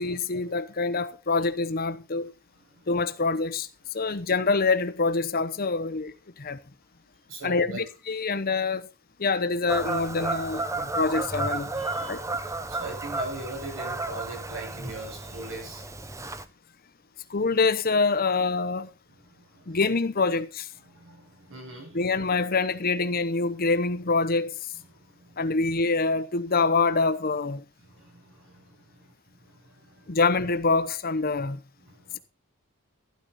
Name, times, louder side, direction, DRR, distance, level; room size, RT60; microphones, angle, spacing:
voice 1, 0.0-2.3 2.9-3.7 3.9-6.6 7.4-8.9 9.2-11.7 12.1-12.2 17.3-18.9 19.7-20.7 21.9-24.6 25.4-27.6 30.1-31.6, left 4 dB, 45° left, 0.9 m, -25 dB
voice 2, 7.3-7.8 11.7-15.9 19.2-19.8 20.8-22.1 24.7-25.4 27.8-29.0 29.5-30.2 31.8-32.2, right 2 dB, 70° right, 8.0 m, -42 dB
Fowl / Bird vocalization bird call bird song, 9.7-16.4, right 2 dB, 15° right, 0.8 m, -32 dB
12.5 x 10.5 x 4.2 m
head